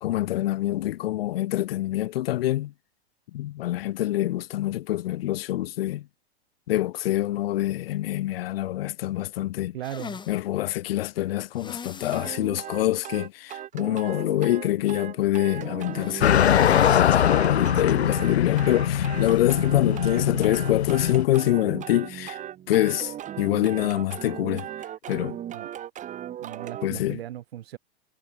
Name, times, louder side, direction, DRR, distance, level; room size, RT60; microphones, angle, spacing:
voice 1, 0.0-2.7 3.3-6.1 6.7-9.7 10.3-22.4 22.7-24.7 25.1-25.4 26.8-27.2, left 14 dB, 65° left, 2.4 m, -25 dB
voice 2, 9.7-10.2 20.0-20.5 25.5-25.7 26.4-27.8, right 12 dB, 70° right, 5.6 m, -38 dB
sound 1, 9.8-10.4 11.5-12.3 12.7-12.8 13.2-13.3 15.9-17.1 17.5-17.6 19.2-19.5, left 6 dB, 15° left, 5.0 m, -40 dB
sound 2, 12.1-26.9, right 11 dB, 25° right, 2.4 m, -37 dB
sound 3, 16.2-21.3, left 9 dB, 90° left, 1.8 m, -22 dB
hypercardioid pair, 135°, 32 cm